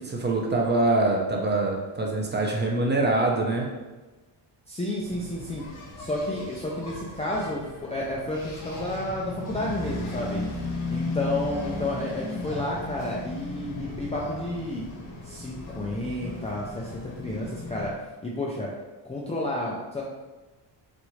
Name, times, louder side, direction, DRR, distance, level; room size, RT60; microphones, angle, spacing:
voice 1, 0.0-3.7, right 2 dB, 20° right, -1 dB, 0.7 m, -24 dB
voice 2, 4.7-5.6 6.0-10.4 10.9-14.8 15.2-17.9 18.2-18.7 19.0-20.0, left 1 dB, 15° left, -4 dB, 0.4 m, -31 dB
Engine, 5.0-18.0, left 2 dB, 40° left, 1.1 m, -36 dB
6.3 x 2.5 x 3.1 m, 1.2 s
cardioid pair, 135°, 48 cm